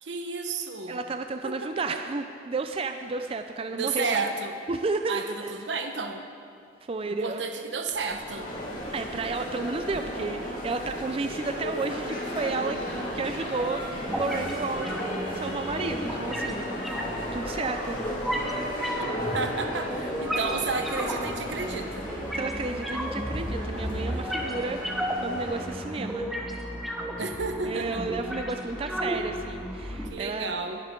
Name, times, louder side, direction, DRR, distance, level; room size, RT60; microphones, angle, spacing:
voice 1, 0.0-1.0 1.4-2.0 3.7-4.6 5.1-6.2 7.0-8.5 19.0-22.1 27.2-28.0 30.0-30.8, right 4 dB, 80° right, 5 dB, 1.1 m, -32 dB
voice 2, 0.9-4.2 4.7-5.5 6.9-7.4 8.9-12.8 13.1-13.9 14.1-15.0 15.3-16.7 17.3-18.0 18.3-18.5 22.3-24.8 25.2-26.3 27.6-30.5, right 3 dB, 30° right, 7 dB, 0.4 m, -32 dB
sound 1, 7.9-25.6, equal, 50° left, 3.0 m, -35 dB
sound 2, 14.1-30.1, equal, ahead, 1.2 m, -34 dB
20.5 x 10.5 x 3.8 m, 2.4 s
head